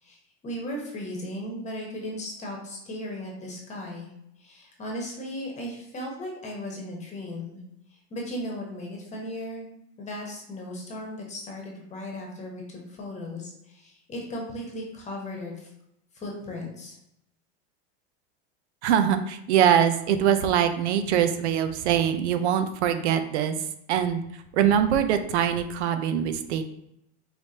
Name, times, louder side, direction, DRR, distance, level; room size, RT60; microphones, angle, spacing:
voice 1, 0.4-4.1 4.4-7.6 7.9-9.7 10.0-15.7 16.1-16.9, left 1 dB, 20° left, -1 dB, 1.0 m, -36 dB
voice 2, 18.8-23.6 23.9-26.6, right 9 dB, 85° right, 9 dB, 0.6 m, -23 dB
4.9 x 3.2 x 2.8 m, 0.78 s
supercardioid pair, 140°, 33 cm